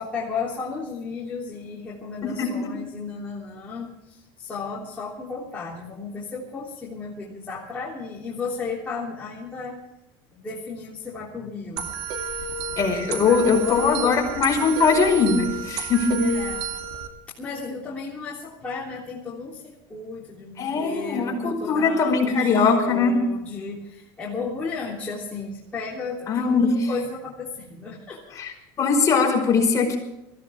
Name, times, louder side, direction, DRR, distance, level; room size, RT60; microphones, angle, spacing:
voice 1, 0.0-9.8 10.3-11.9 13.2-14.2 14.6-14.7 16.2-16.6 17.4-28.4, left 4 dB, 10° left, -7 dB, 3.4 m, -34 dB
voice 2, 2.2-2.7 12.8-16.3 20.6-23.2 26.3-26.9 28.3-28.5 28.8-30.0, left 4 dB, 30° left, 1 dB, 5.0 m, -21 dB
sound 1, 11.8-17.1, right 3 dB, 55° right, 2.5 m, -30 dB
23.0 x 15.5 x 3.6 m, 0.92 s
supercardioid pair, 145°, 12 cm